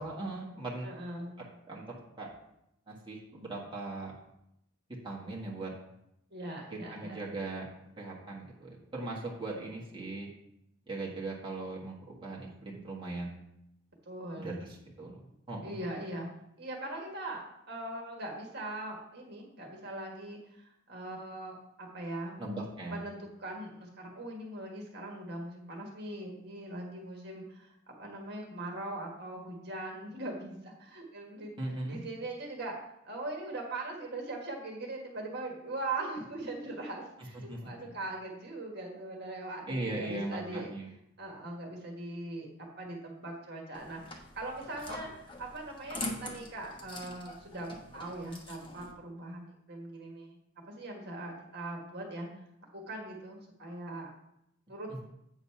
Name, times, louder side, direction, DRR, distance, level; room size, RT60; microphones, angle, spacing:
voice 1, 0.0-0.9 1.7-1.8 2.2-2.3 2.9-4.1 5.0-5.7 6.7-7.7 8.0-10.3 10.9-13.4 14.4-14.5 15.0-15.2 15.5-15.7 22.4-23.0 31.6-32.0 37.5-37.9 39.7-40.9, right 2 dB, 25° right, -4 dB, 1.5 m, -39 dB
voice 2, 0.8-1.4 6.3-7.2 14.1-14.6 15.6-16.3 16.6-22.4 22.9-27.7 28.0-31.5 31.9-32.7 33.0-40.7 41.2-50.4 50.7-52.3 52.7-54.1 54.7-54.9, right 2 dB, 55° right, 0 dB, 1.5 m, -41 dB
sound 1, 43.7-48.9, left 2 dB, 25° left, 1.1 m, -43 dB
8.4 x 4.0 x 5.7 m, 0.80 s
head